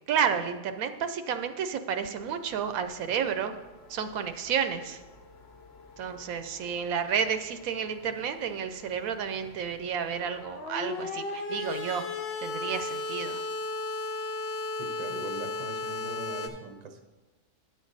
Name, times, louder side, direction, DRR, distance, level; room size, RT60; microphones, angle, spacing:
voice 1, 0.1-3.5 3.9-5.0 6.0-12.0 12.4-13.4, right 7 dB, 80° right, 9 dB, 1.0 m, -31 dB
sound 1, 2.4-16.5, left 3 dB, 55° left, 0.9 m, -38 dB
voice 2, 14.8-17.0, right 4 dB, 40° right, 6 dB, 0.7 m, -41 dB
9.5 x 6.4 x 4.0 m, 1.2 s
omnidirectional pair, 1.5 m